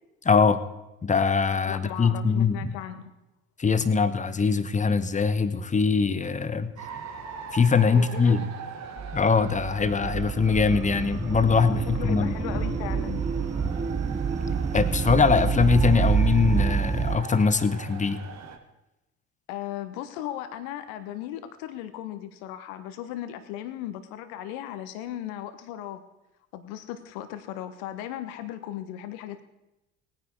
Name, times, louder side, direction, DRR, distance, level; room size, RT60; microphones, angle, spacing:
voice 1, 0.2-0.6 1.0-2.8 3.6-6.7 7.5-8.4 9.1-12.6 13.6-13.7 14.7-18.2, left 5 dB, 20° left, 13 dB, 1.2 m, -22 dB
voice 2, 1.7-3.1 7.9-8.5 11.5-13.2 19.5-26.0 26.5-29.4, left 12 dB, 65° left, 11 dB, 1.2 m, -37 dB
sound 1, 6.8-18.6, right 5 dB, 45° right, 2.0 m, -41 dB
sound 2, 9.0-17.2, right 6 dB, 20° right, 0.9 m, -27 dB
19.0 x 9.7 x 4.7 m, 0.94 s
hypercardioid pair, 60°, 36 cm